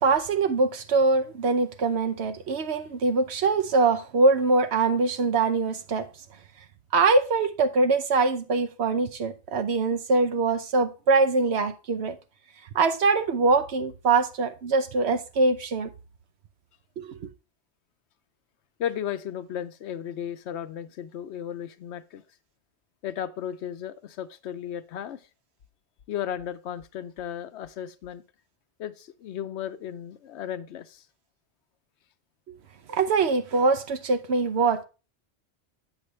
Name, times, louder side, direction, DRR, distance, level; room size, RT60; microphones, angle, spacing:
voice 1, 0.0-6.1 6.9-12.2 12.7-15.9 17.0-17.3 32.9-34.8, right 3 dB, 75° right, 1.1 m, -23 dB
voice 2, 18.8-22.2 23.0-25.2 26.1-28.2 28.8-31.0, left 9 dB, 85° left, 0.9 m, -35 dB
8.1 x 6.6 x 3.1 m
omnidirectional pair, 1.1 m